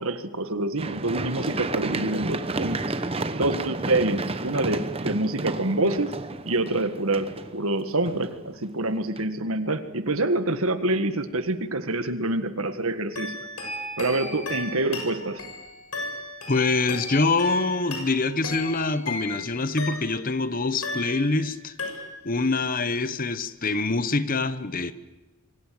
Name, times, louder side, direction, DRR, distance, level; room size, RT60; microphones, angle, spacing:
voice 1, 0.0-2.8 3.3-6.1 6.5-13.4 14.0-15.4, right 2 dB, 70° right, 1.8 m, -26 dB
Run, 0.8-8.7 9.2-9.3, right 2 dB, 25° right, 1.0 m, -31 dB
sound 1, 13.1-20.4 20.8-21.5 21.8-22.4, left 2 dB, 85° left, 7.1 m, -35 dB
voice 2, 16.5-21.7 22.2-24.9, left 3 dB, 40° left, 1.0 m, -25 dB
27.0 x 24.0 x 7.8 m
head